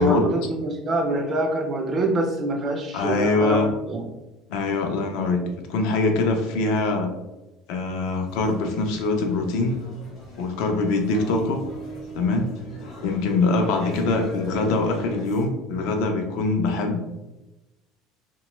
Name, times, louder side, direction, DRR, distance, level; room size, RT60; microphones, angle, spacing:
voice 1, 0.0-4.1 5.4-5.5, right 1 dB, 20° right, 2 dB, 0.3 m, -25 dB
voice 2, 2.9-3.7 4.5-7.1 7.7-9.8 10.4-11.6 12.1-12.5 12.8-17.2, left 3 dB, 55° left, 4 dB, 0.4 m, -23 dB
sound 1, 8.3-15.5, left 1 dB, 35° left, 0.7 m, -42 dB
sound 2, 11.1-14.3, right 4 dB, 75° right, 0.6 m, -39 dB
2.8 x 2.2 x 2.9 m, 0.99 s
cardioid pair, 180°, 0 cm